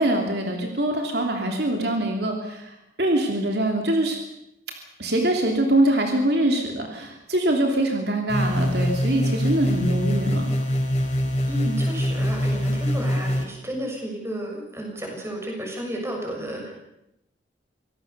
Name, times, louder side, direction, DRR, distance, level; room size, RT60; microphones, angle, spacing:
voice 1, 0.0-4.2 5.0-10.6, right 1 dB, 60° right, 2 dB, 3.2 m, -23 dB
sound 1, 8.3-13.4, equal, 35° left, 3.9 m, -24 dB
voice 2, 11.5-16.7, right 1 dB, 15° right, 1 dB, 6.6 m, -32 dB
26.0 x 18.0 x 6.9 m, 0.85 s
head